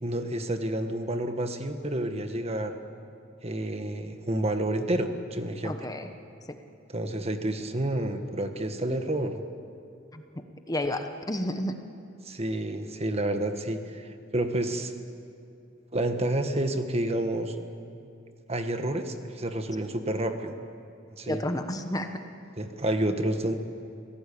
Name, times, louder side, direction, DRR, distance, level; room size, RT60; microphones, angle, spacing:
voice 1, 0.0-2.8 3.4-5.8 6.9-9.4 12.2-14.9 15.9-17.5 18.5-20.5 21.2-21.4 22.6-23.5, right 1 dB, 30° right, 7 dB, 1.5 m, -29 dB
voice 2, 5.6-6.1 6.5-6.6 10.1-10.2 10.7-11.7 21.3-22.2, left 1 dB, 20° left, 6 dB, 1.2 m, -31 dB
27.5 x 17.0 x 8.6 m, 2.6 s
head